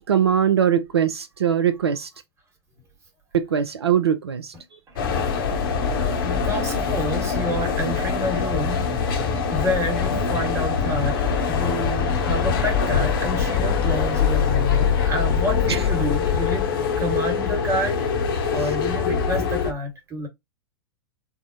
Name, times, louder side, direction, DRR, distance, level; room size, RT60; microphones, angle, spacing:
voice 1, 0.1-2.1 3.3-4.8 15.7-15.8 18.5-18.7, right 8 dB, 75° right, 0.4 m, -22 dB
sound 1, 5.0-19.7, left 6 dB, 55° left, 0.8 m, -23 dB
voice 2, 6.2-8.9 9.5-11.2 11.4-16.7 17.0-20.3, equal, 20° right, 1.2 m, -29 dB
3.4 x 2.0 x 2.6 m
figure-of-eight pair, 95°, 14 cm